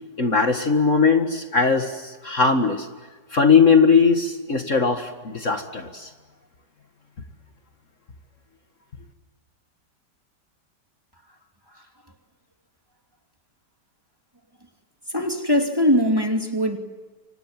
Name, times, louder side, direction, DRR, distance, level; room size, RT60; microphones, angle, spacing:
voice 1, 0.2-2.9 3.3-6.1, left 5 dB, 45° left, 6 dB, 2.1 m, -19 dB
voice 2, 15.1-16.8, equal, 15° right, 3 dB, 2.7 m, -21 dB
29.5 x 26.0 x 7.5 m, 1.3 s
omnidirectional pair, 1.9 m